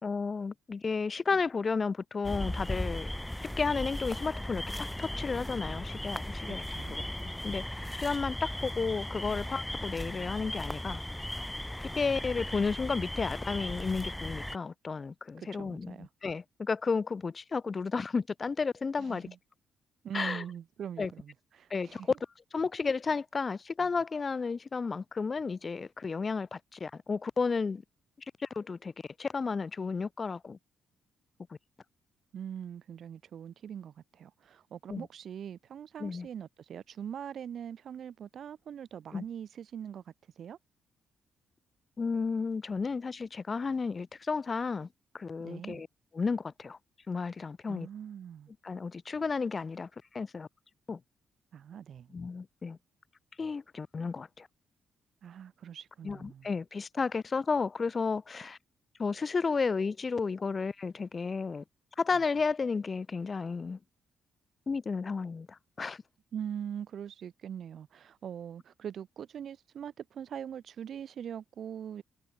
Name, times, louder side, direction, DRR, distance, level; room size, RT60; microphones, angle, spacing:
voice 1, 0.0-3.1 3.4-6.6 6.9-11.0 12.0-19.3 20.1-20.4 21.0-21.1 21.7-22.0 22.5-27.8 28.4-28.9 29.2-30.6 34.9-35.1 36.0-36.3 39.1-39.2 42.0-44.9 45.1-45.9 46.1-46.8 47.1-47.9 48.6-50.5 50.9-51.0 52.1-52.8 53.4-54.5 56.0-58.6 59.0-61.6 62.0-63.8 64.7-66.0, left 4 dB, 35° left, 3.5 m, -32 dB
sound 1, 2.2-14.6, left 1 dB, 5° left, 6.4 m, -37 dB
voice 2, 6.5-7.0 15.4-16.1 19.0-19.4 20.0-22.1 32.3-40.6 45.4-45.8 47.7-48.5 51.5-52.1 55.2-56.5 66.3-72.0, right 8 dB, 60° right, 5.0 m, -42 dB
cardioid pair, 105°, 0 cm